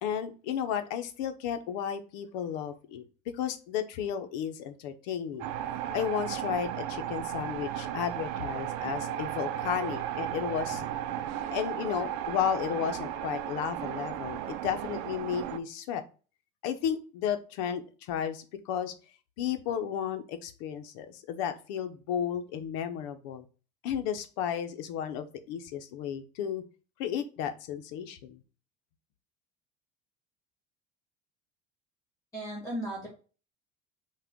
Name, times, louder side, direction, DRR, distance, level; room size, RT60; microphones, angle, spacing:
voice 1, 0.0-3.0 3.4-5.5 5.9-10.9 11.5-16.0 16.6-18.9 19.4-23.5 23.8-26.6 27.0-28.4, left 8 dB, 90° left, 8 dB, 0.8 m, -33 dB
sound 1, 5.4-15.6, right 11 dB, 80° right, 0.5 m, -35 dB
voice 2, 32.3-33.1, right 1 dB, 15° left, -3 dB, 1.6 m, -35 dB
6.0 x 2.4 x 3.6 m, 0.35 s
cardioid pair, 175°, 21 cm